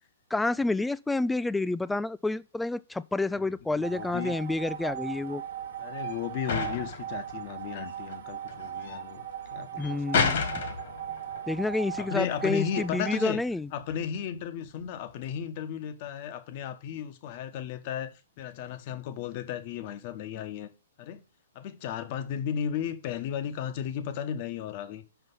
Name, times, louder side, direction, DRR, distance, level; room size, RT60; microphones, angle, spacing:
voice 1, 0.3-5.4 9.8-10.4 11.5-13.7, left 2 dB, 5° left, 0.3 m, -29 dB
sound 1, 3.6-15.5, left 6 dB, 60° left, 1.9 m, -35 dB
voice 2, 3.7-4.3 5.8-10.2 12.0-13.4 13.7-20.7 21.0-21.2 21.5-25.0, left 9 dB, 45° left, 1.1 m, -35 dB
sound 2, 3.8-13.2, right 10 dB, 65° right, 1.2 m, -38 dB
6.0 x 5.5 x 5.4 m
hypercardioid pair, 120°, 0 cm